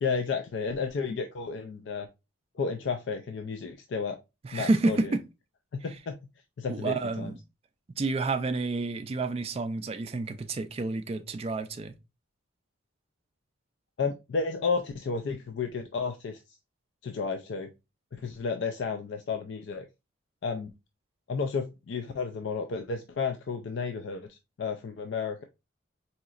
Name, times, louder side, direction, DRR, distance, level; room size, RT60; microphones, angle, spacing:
voice 1, 0.0-2.1 2.6-4.2 4.5-5.1 5.7-6.2 6.6-7.3 14.0-16.4 17.0-17.7 18.1-19.9 20.4-20.7 21.3-25.4, left 5 dB, 60° left, 0.3 m, -32 dB
voice 2, 4.4-5.2 6.7-7.4 8.0-11.9, right 3 dB, 30° right, 0.3 m, -29 dB
4.0 x 2.8 x 2.4 m
head